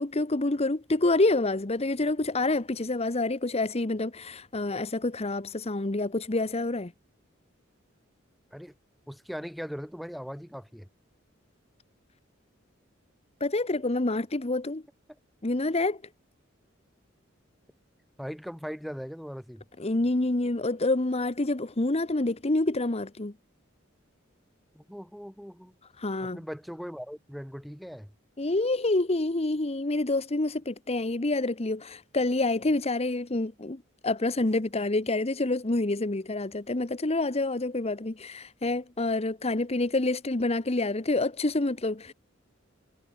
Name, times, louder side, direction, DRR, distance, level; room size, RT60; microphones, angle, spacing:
voice 1, 0.0-6.9 13.4-14.8 15.4-16.0 19.8-23.3 26.0-26.4 28.4-42.1, left 2 dB, 30° left, 1.1 m, -27 dB
voice 2, 9.1-10.9 18.2-19.6 24.7-25.7 26.2-28.1, equal, ahead, 5.5 m, -39 dB
head